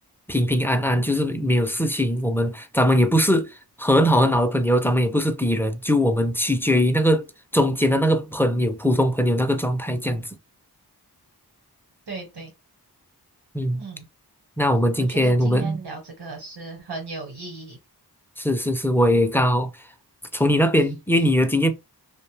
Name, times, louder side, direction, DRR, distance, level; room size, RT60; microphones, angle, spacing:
voice 1, 0.3-7.3 7.5-10.3 13.5-13.8 14.6-15.8 18.4-19.7 20.3-21.7, equal, 5° left, 0.4 m, -21 dB
voice 2, 12.1-12.5 13.8-14.1 15.0-17.8, right 4 dB, 90° right, 1.0 m, -36 dB
2.5 x 2.1 x 3.2 m
wide cardioid pair, 50°, 39 cm